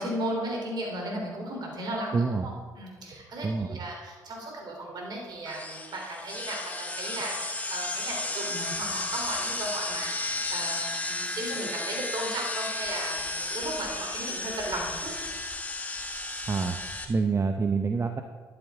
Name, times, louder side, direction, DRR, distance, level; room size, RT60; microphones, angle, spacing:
voice 1, 0.0-15.1, right 1 dB, 55° right, 0 dB, 3.5 m, -35 dB
voice 2, 2.1-2.5 3.4-3.9 16.5-16.8 17.1-18.2, right 4 dB, 35° right, 6 dB, 0.8 m, -27 dB
sound 1, 5.5-17.0, left 2 dB, 20° left, 1.8 m, -33 dB
11.5 x 11.0 x 3.7 m, 1.5 s
hypercardioid pair, 55°, 8 cm